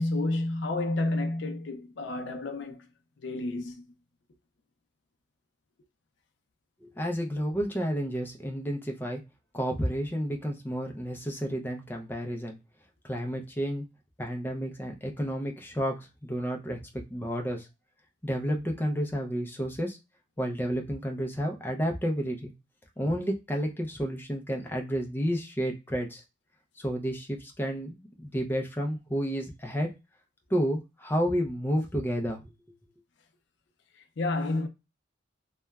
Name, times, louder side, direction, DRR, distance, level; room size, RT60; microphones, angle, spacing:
voice 1, 0.0-2.8 3.2-3.8 34.2-34.7, left 2 dB, 70° left, 0.4 m, -30 dB
voice 2, 6.8-9.2 9.5-12.6 13.0-13.8 14.2-16.0 16.2-16.8 17.1-17.7 18.2-20.0 20.4-22.5 23.0-26.2 26.8-29.9 30.5-32.4, equal, 10° left, 0.4 m, -31 dB
2.9 x 2.2 x 2.3 m
head